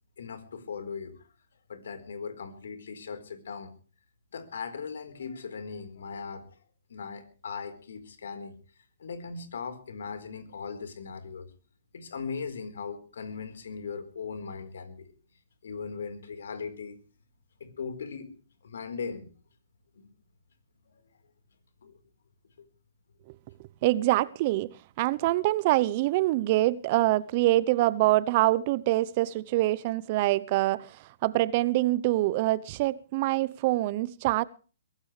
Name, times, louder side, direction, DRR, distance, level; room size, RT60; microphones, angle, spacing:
voice 1, 0.2-1.1 1.7-3.7 4.3-6.4 6.9-8.5 9.0-11.5 11.9-15.1 15.6-17.0 17.6-18.3 18.6-19.3 21.8-21.9, left 5 dB, 70° left, 4.3 m, -38 dB
voice 2, 23.8-34.4, right 17 dB, 40° right, 0.8 m, -25 dB
22.5 x 17.0 x 3.4 m
hypercardioid pair, 130°, 0 cm